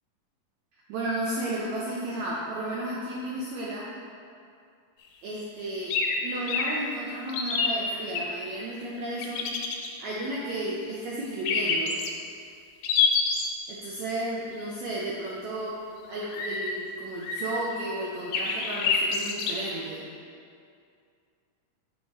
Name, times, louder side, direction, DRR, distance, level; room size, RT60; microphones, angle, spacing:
voice 1, 0.9-3.9 5.2-9.5 10.0-12.0 13.7-20.1, right 1 dB, 80° right, -4 dB, 1.6 m, -33 dB
sound 1, 5.9-6.2 6.5-6.7 7.3-8.2 9.2-9.9 11.5-12.1 12.8-13.5 16.3-16.7 17.2-17.8 18.3-19.5, left 5 dB, 85° left, 2.4 m, -26 dB
7.3 x 4.7 x 4.2 m, 2.4 s
omnidirectional pair, 3.9 m